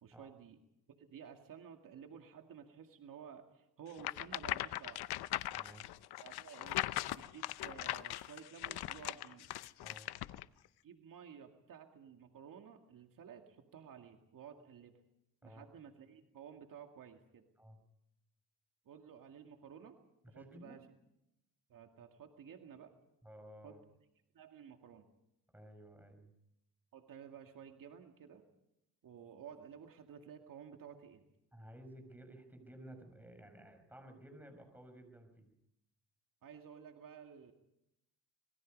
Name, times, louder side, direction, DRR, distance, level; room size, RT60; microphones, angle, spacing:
voice 1, 0.0-0.6 0.9-5.0 6.2-6.8 7.2-9.5 10.8-15.0 15.4-17.4 18.9-20.0 20.3-20.8 21.7-22.9 23.6-23.8 24.3-25.1 26.9-28.5 29.0-31.2 36.4-37.5, right 7 dB, 55° right, 4 dB, 2.2 m, -53 dB
sound 1, 4.0-10.4, left 15 dB, 75° left, 0.8 m, -40 dB
voice 2, 5.5-5.9 9.8-10.1 15.4-15.7 17.6-17.8 20.2-20.8 23.2-23.8 25.5-26.3 31.5-35.5, right 1 dB, 5° right, 5 dB, 5.9 m, -55 dB
26.0 x 21.5 x 5.3 m, 0.84 s
cardioid pair, 120°, 38 cm